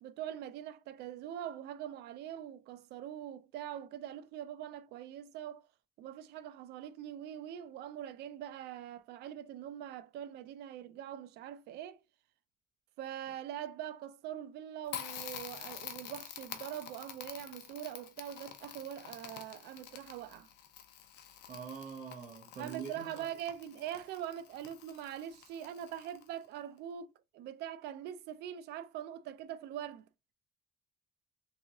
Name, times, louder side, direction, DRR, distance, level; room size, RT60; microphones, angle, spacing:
voice 1, 0.0-5.6 6.0-12.0 13.0-20.5 22.6-27.1 27.3-30.1, right 10 dB, 80° right, 0.5 m, -43 dB
Crackle, 14.9-26.4, left 10 dB, 90° left, 0.7 m, -48 dB
voice 2, 21.5-23.3, right 6 dB, 55° right, 1.0 m, -44 dB
3.5 x 3.0 x 2.9 m
cardioid pair, 110°, 17 cm